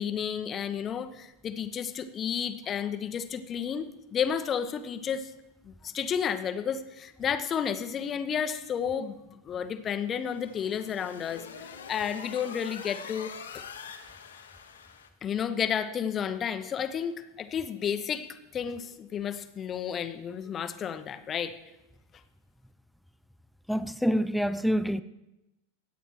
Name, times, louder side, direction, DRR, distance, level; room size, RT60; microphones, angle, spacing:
voice 1, 0.0-3.9 4.1-5.3 5.6-13.3 15.2-18.3 18.5-21.5, left 8 dB, 25° left, 0.8 m, -32 dB
sound 1, 10.1-15.1, left 7 dB, 70° left, 1.0 m, -44 dB
voice 2, 23.7-25.0, equal, ahead, 0.4 m, -26 dB
22.5 x 9.2 x 3.1 m
figure-of-eight pair, 90°, 0 cm